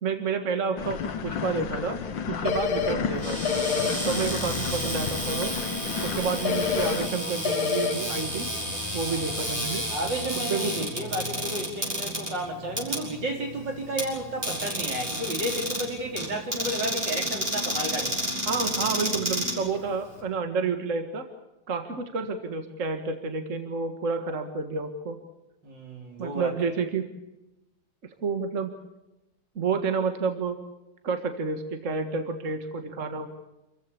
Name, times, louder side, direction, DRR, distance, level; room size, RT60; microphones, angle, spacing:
voice 1, 0.0-2.0 2.3-3.6 4.0-5.6 6.0-8.5 8.9-9.9 10.5-10.7 18.5-21.2 21.7-25.2 26.2-27.1 28.2-28.7 29.6-30.6 31.0-33.3, right 4 dB, 45° right, 7 dB, 2.0 m, -29 dB
sound 1, 0.8-7.1, left 6 dB, 85° left, 1.9 m, -33 dB
sound 2, 2.5-2.9 3.5-3.9 6.5-6.9 7.5-7.9, left 7 dB, 60° left, 2.1 m, -26 dB
Cupboard open or close, 3.1-20.2, equal, 25° right, 6.9 m, -31 dB
voice 2, 4.1-4.4 9.0-9.4 9.9-18.3 25.6-26.5, right 1 dB, 75° right, 2 dB, 4.6 m, -32 dB
28.0 x 15.0 x 8.5 m, 0.94 s
omnidirectional pair, 1.9 m